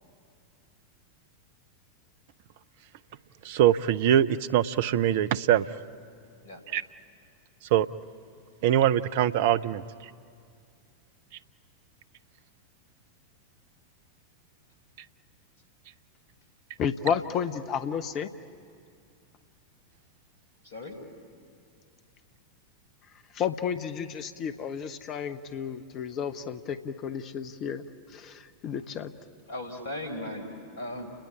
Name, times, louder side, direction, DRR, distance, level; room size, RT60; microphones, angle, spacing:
voice 1, 3.4-5.6 6.7-6.8 7.7-7.9 8.6-9.8, right 11 dB, 50° right, 16 dB, 0.6 m, -23 dB
voice 2, 16.8-18.3 23.3-27.8 28.1-29.1, left 7 dB, 35° left, 11 dB, 0.9 m, -32 dB
voice 3, 20.6-20.9 29.5-31.1, left 1 dB, 60° left, 6 dB, 4.3 m, -37 dB
30.0 x 20.5 x 8.7 m, 2.3 s
figure-of-eight pair, 90°, 0 cm